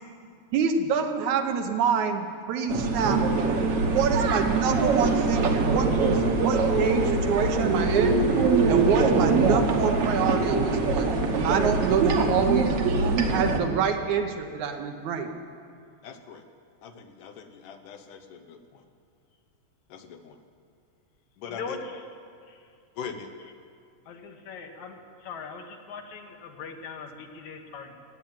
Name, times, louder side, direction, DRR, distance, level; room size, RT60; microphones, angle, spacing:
voice 1, 0.5-3.2 3.9-8.3 8.7-12.7 13.3-15.4, right 6 dB, 75° right, 6 dB, 2.3 m, -26 dB
sound 1, 2.7-13.6, right 3 dB, 60° right, 1.9 m, -23 dB
sound 2, 3.1-12.4, right 2 dB, 35° right, 1.6 m, -38 dB
voice 2, 16.0-16.4 16.8-18.8 19.9-20.4 21.4-21.8 23.0-23.3, left 6 dB, 85° left, 8 dB, 2.5 m, -41 dB
voice 3, 24.1-25.0 25.2-27.9, left 6 dB, 70° left, 4 dB, 2.4 m, -40 dB
16.0 x 9.0 x 8.9 m, 2.4 s
omnidirectional pair, 3.5 m